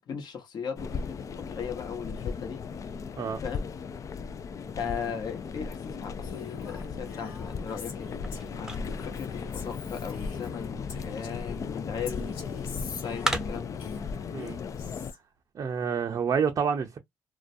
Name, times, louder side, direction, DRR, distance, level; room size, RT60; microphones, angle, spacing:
voice 1, 0.0-2.6 3.4-3.6 4.6-8.3 8.5-13.8, left 6 dB, 55° left, 1.0 m, -38 dB
sound 1, 0.8-15.1, left 5 dB, 40° left, 0.3 m, -37 dB
Female speech woman speaking, 6.2-11.6 12.1-15.2, left 6 dB, 85° left, 1.1 m, -44 dB
sound 2, 7.1-13.9, right 1 dB, 5° right, 0.6 m, -39 dB
voice 2, 15.5-17.0, right 6 dB, 45° right, 0.5 m, -28 dB
2.3 x 2.1 x 2.6 m
supercardioid pair, 75°, 8 cm